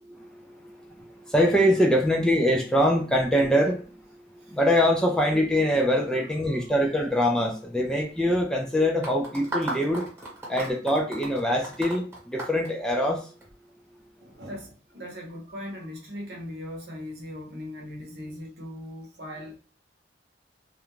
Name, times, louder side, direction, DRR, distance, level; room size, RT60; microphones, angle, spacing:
voice 1, 0.1-4.0 4.5-10.1 10.5-13.3, equal, 5° left, 0.3 m, -24 dB
sound 1, 9.0-13.4, right 2 dB, 15° right, 1.1 m, -35 dB
voice 2, 14.2-19.6, left 1 dB, 60° right, 0.8 m, -39 dB
2.4 x 2.2 x 3.0 m
head